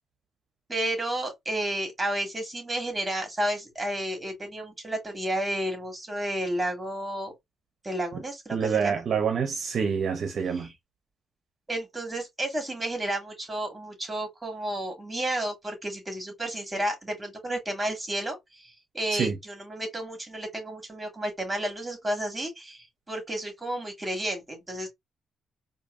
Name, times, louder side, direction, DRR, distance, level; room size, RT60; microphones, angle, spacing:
voice 1, 0.7-7.3 7.8-9.0 10.5-10.7 11.7-24.9, right 1 dB, 15° right, 2.2 m, -32 dB
voice 2, 8.5-10.7 19.1-19.3, right 6 dB, 55° right, 0.7 m, -27 dB
4.5 x 2.6 x 2.5 m
cardioid pair, 90°, 0 cm